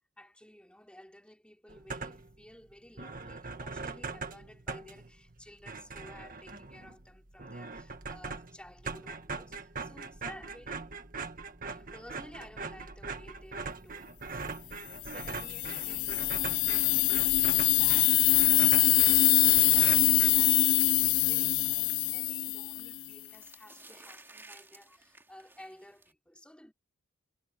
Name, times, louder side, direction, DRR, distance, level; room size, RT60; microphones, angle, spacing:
voice 1, 0.2-10.9 11.7-26.7, left 1 dB, 5° left, 3.3 m, -54 dB
sound 1, 1.7-2.4 2.7-2.8 3.0-20.8, right 4 dB, 45° right, 1.8 m, -41 dB
sound 2, 15.1-23.1, left 18 dB, 75° left, 0.3 m, -24 dB
sound 3, 17.4-26.1, right 2 dB, 10° right, 2.6 m, -56 dB
head